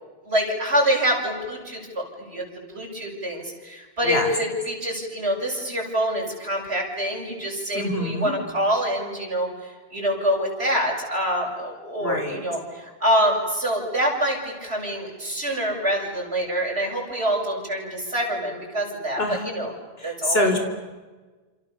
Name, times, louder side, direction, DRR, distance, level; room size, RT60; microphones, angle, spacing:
voice 1, 0.2-19.7 20.0-20.6, equal, 90° right, -1 dB, 7.7 m, -26 dB
voice 2, 7.7-8.3 12.0-12.4 19.2-19.5 20.0-20.6, left 1 dB, 70° left, 5 dB, 4.5 m, -25 dB
29.0 x 28.5 x 7.1 m, 1.3 s
omnidirectional pair, 1.1 m